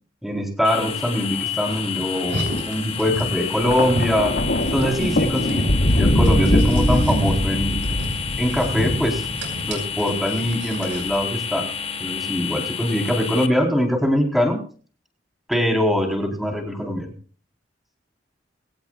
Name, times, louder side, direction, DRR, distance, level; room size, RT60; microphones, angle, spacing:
voice 1, 0.2-4.4 4.7-7.8 8.4-9.3 9.6-11.7 12.0-14.6 15.5-17.1, equal, ahead, 2 dB, 4.1 m, -23 dB
sound 1, 0.6-13.5, left 8 dB, 35° left, 1.6 m, -30 dB
Car, 2.2-11.2, right 1 dB, 75° right, 6.1 m, -30 dB
Thunder, 3.6-10.0 10.9-11.2, left 1 dB, 65° left, 2.2 m, -22 dB
22.5 x 17.5 x 2.5 m, 0.41 s
head